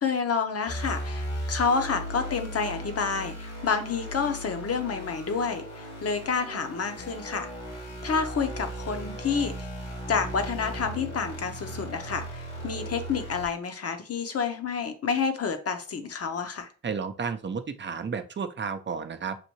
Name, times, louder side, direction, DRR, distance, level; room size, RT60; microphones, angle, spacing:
voice 1, 0.0-7.5 8.0-9.7 10.1-16.7, left 5 dB, 50° left, 7 dB, 1.0 m, -29 dB
sound 1, 0.7-13.5, equal, 70° left, 2.2 m, -37 dB
voice 2, 16.8-19.4, right 5 dB, 35° right, 9 dB, 0.7 m, -32 dB
6.8 x 2.6 x 3.0 m, 0.38 s
supercardioid pair, 55°, 31 cm